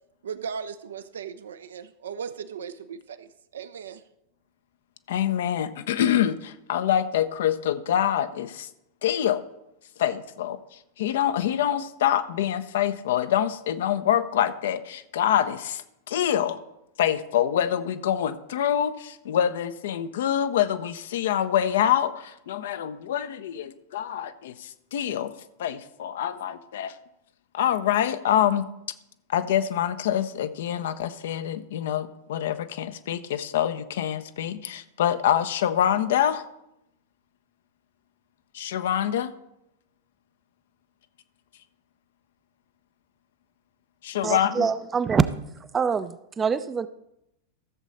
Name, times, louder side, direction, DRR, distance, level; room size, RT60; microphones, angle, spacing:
voice 1, 0.2-4.0, right 7 dB, 65° right, 11 dB, 0.6 m, -37 dB
voice 2, 5.1-8.7 9.0-9.4 10.0-16.6 17.0-25.3 25.6-27.0 27.5-28.7 29.3-36.4 38.5-39.3 44.0-44.7, left 10 dB, 60° left, 11 dB, 0.7 m, -25 dB
voice 3, 44.2-45.3 45.7-46.9, right 6 dB, 20° right, 14 dB, 0.5 m, -24 dB
14.5 x 7.3 x 4.1 m, 0.84 s
figure-of-eight pair, 90°, 0 cm